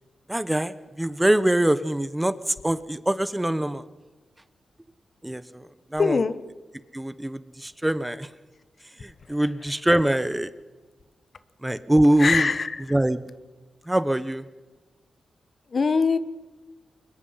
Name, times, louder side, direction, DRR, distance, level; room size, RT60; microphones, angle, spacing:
voice 1, 0.3-3.8 5.2-6.2 6.9-8.3 9.0-10.5 11.6-12.5 12.9-13.3 13.9-14.5, right 1 dB, 10° right, 14 dB, 1.0 m, -23 dB
voice 2, 6.0-6.3 12.2-12.8 15.7-16.2, left 5 dB, 50° left, 14 dB, 1.2 m, -22 dB
23.5 x 21.5 x 5.7 m, 1.2 s
cardioid pair, 90°, 0 cm